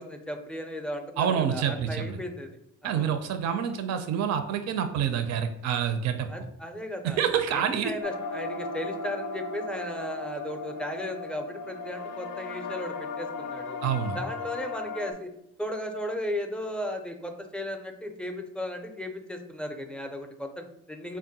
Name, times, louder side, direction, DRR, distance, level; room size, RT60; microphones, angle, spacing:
voice 1, 0.0-2.5 2.8-3.2 6.3-7.2 7.5-13.8 14.1-15.3 15.6-21.2, left 1 dB, 5° left, 4 dB, 0.4 m, -36 dB
voice 2, 1.2-2.2 2.8-6.3 7.0-7.9 13.8-14.2, right 8 dB, 60° right, 7 dB, 0.4 m, -27 dB
sound 1, 8.0-15.1, left 3 dB, 75° left, 0.5 m, -36 dB
3.5 x 2.1 x 4.0 m, 0.79 s
cardioid pair, 90°, 30 cm